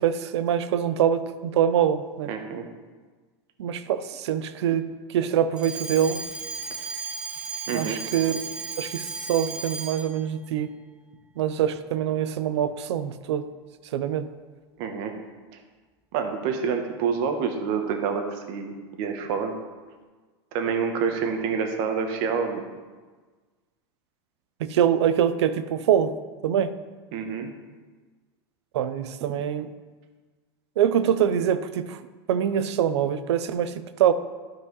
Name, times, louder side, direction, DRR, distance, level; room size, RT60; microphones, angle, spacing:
voice 1, 0.0-2.3 3.6-4.8 5.1-6.2 7.7-8.4 8.8-10.7 11.4-13.5 13.9-14.3 24.6-26.1 26.4-26.7 28.7-29.7 30.8-32.0 32.3-34.1, right 9 dB, 80° right, 13 dB, 0.6 m, -24 dB
voice 2, 2.3-2.7 7.7-8.0 14.8-15.1 15.5-15.6 16.1-19.5 20.5-22.6 27.1-27.5, right 6 dB, 60° right, 5 dB, 1.3 m, -27 dB
Alarm, 5.6-10.2, right 4 dB, 5° right, 0.7 m, -35 dB
12.5 x 4.9 x 4.0 m, 1.4 s
supercardioid pair, 120°, 14 cm